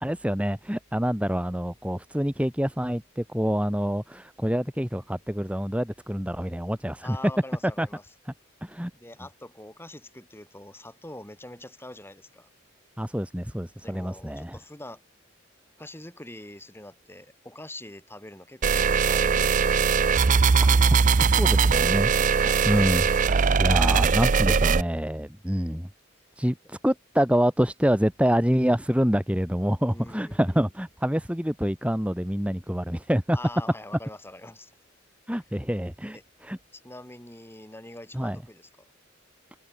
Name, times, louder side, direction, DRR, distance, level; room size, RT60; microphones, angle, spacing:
voice 1, 0.0-7.2 7.8-7.9 8.6-8.9 13.0-14.6 20.6-20.7 21.3-25.9 26.4-33.4 35.3-36.6 38.1-38.4, equal, 5° right, 1.6 m, -26 dB
voice 2, 7.0-8.0 8.9-12.5 13.8-15.0 15.8-20.0 22.4-22.7 24.3-24.4 29.9-30.7 33.3-34.7 36.1-36.2 36.7-38.9, left 1 dB, 10° left, 4.3 m, -44 dB
sound 1, 18.6-24.8, right 5 dB, 40° right, 0.5 m, -20 dB
head